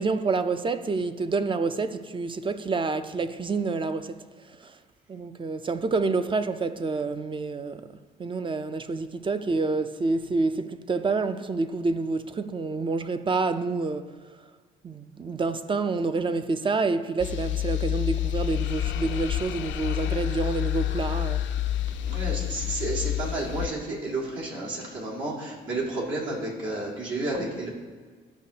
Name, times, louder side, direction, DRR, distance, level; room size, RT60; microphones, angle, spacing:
voice 1, 0.0-4.2 4.6-4.8 5.1-7.8 8.2-14.1 14.8-21.5, right 3 dB, 25° right, 0.4 m, -28 dB
sound 1, 17.2-23.7, left 12 dB, 70° left, 0.4 m, -28 dB
voice 2, 21.9-27.7, right 2 dB, 75° right, 2.1 m, -31 dB
12.5 x 5.1 x 2.8 m
cardioid pair, 90°, 20 cm